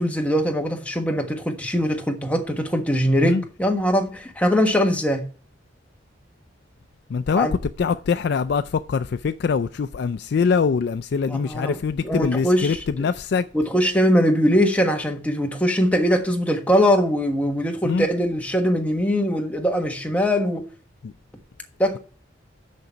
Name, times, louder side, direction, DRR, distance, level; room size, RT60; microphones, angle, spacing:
voice 1, 0.0-5.2 7.4-7.5 11.3-11.8 12.0-13.1 13.5-20.6 21.8-22.0, equal, 10° left, 1.3 m, -21 dB
voice 2, 7.1-13.5 17.8-18.1 21.0-21.1, left 5 dB, 60° left, 0.3 m, -23 dB
6.6 x 6.0 x 6.8 m
head